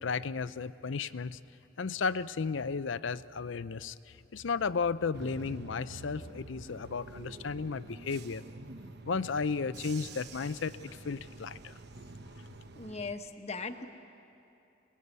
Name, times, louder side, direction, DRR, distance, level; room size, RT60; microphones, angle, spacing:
voice 1, 0.0-1.4 1.8-3.9 4.3-8.4 9.0-10.7 11.0-11.7, left 5 dB, 70° left, 15 dB, 0.5 m, -34 dB
Bus / Engine, 5.1-13.1, right 3 dB, 55° right, 0.9 m, -48 dB
voice 2, 12.8-13.9, left 4 dB, 35° left, 7 dB, 1.1 m, -38 dB
28.0 x 20.5 x 8.2 m, 2.8 s
head